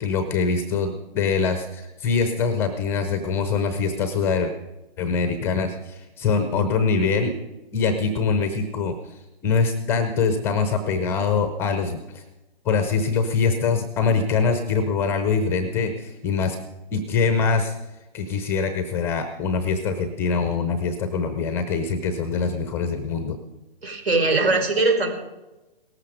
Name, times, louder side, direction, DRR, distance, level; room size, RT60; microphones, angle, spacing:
voice 1, 0.0-4.5 5.0-7.3 7.7-9.0 9.4-12.2 12.7-16.6 16.9-17.7 18.1-23.4, left 5 dB, 10° left, 9 dB, 0.5 m, -23 dB
voice 2, 23.8-25.1, right 3 dB, 75° right, 4 dB, 4.8 m, -20 dB
18.0 x 14.0 x 5.2 m, 1.0 s
figure-of-eight pair, 140°, 31 cm